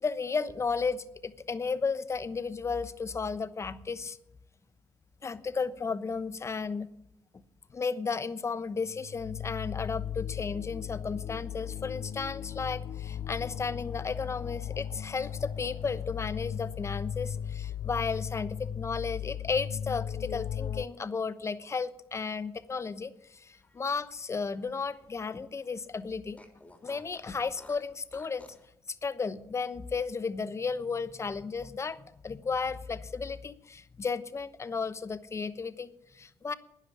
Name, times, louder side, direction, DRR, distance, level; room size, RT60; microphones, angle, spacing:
voice 1, 0.0-4.2 5.2-6.9 7.7-26.4 26.8-28.5 28.9-35.9 36.1-36.5, left 5 dB, 35° left, 14 dB, 1.0 m, -34 dB
sound 1, 8.8-20.9, left 9 dB, 60° left, 0.4 m, -37 dB
Fart, 23.3-25.4 25.7-25.8 26.3-28.7, left 2 dB, 15° left, 3.7 m, -56 dB
11.5 x 9.9 x 8.5 m, 0.83 s
cardioid pair, 75°, 9 cm